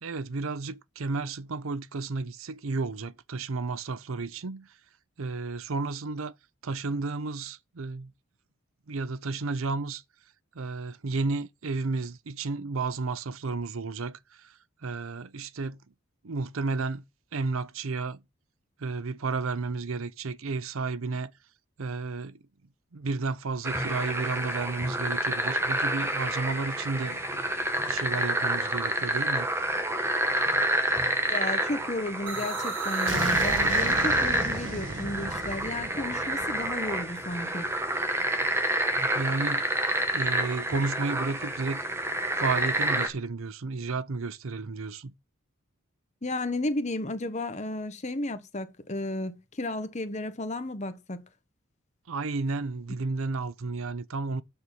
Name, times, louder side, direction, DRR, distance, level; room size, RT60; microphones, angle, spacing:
voice 1, 0.0-4.8 5.2-6.3 6.6-8.1 8.9-10.0 10.5-15.8 16.2-17.0 17.3-18.2 18.8-21.3 21.8-22.4 22.9-27.4 27.9-29.5 39.0-39.7 40.1-41.8 42.4-45.1 52.1-54.4, right 3 dB, 85° right, 0.7 m, -32 dB
sound 1, 23.6-43.1, right 1 dB, 10° right, 1.3 m, -28 dB
voice 2, 31.0-37.7 46.2-51.2, left 2 dB, 35° left, 1.1 m, -33 dB
sound 2, 32.3-38.0, right 3 dB, 65° right, 1.7 m, -36 dB
6.8 x 6.3 x 7.0 m
head